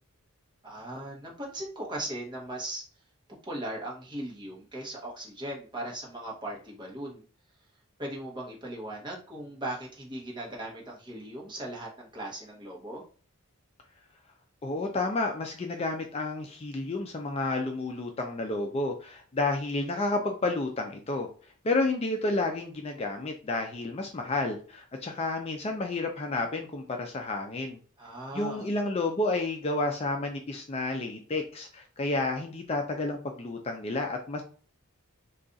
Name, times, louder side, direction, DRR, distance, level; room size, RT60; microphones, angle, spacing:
voice 1, 0.6-2.8 3.5-7.2 8.0-13.0 28.0-28.7, right 1 dB, 20° right, -3 dB, 0.9 m, -38 dB
voice 2, 14.6-21.3 21.6-27.8 28.3-34.4, left 2 dB, 30° left, 3 dB, 0.3 m, -30 dB
2.5 x 2.3 x 3.8 m, 0.39 s
head